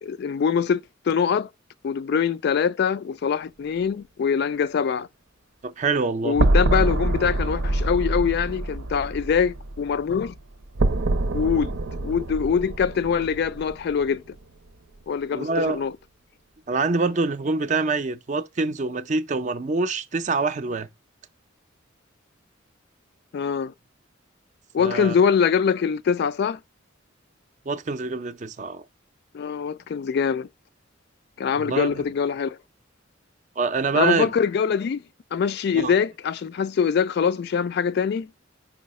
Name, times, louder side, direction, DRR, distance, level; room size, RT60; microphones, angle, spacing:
voice 1, 0.0-0.8 1.1-1.5 1.8-5.1 6.2-10.3 11.3-11.8 12.0-14.2 15.1-15.9 23.3-23.7 24.7-26.6 29.3-30.5 31.4-32.6 33.9-35.0 35.3-38.3, left 6 dB, 55° left, 0.3 m, -23 dB
voice 2, 5.6-6.4 11.2-11.4 15.3-15.8 16.7-20.9 24.8-25.1 27.7-28.8 31.6-32.0 33.6-34.3 35.7-35.9, right 3 dB, 40° right, 0.5 m, -25 dB
sound 1, 6.4-14.4, right 2 dB, 85° right, 0.6 m, -25 dB
5.5 x 4.8 x 4.1 m
head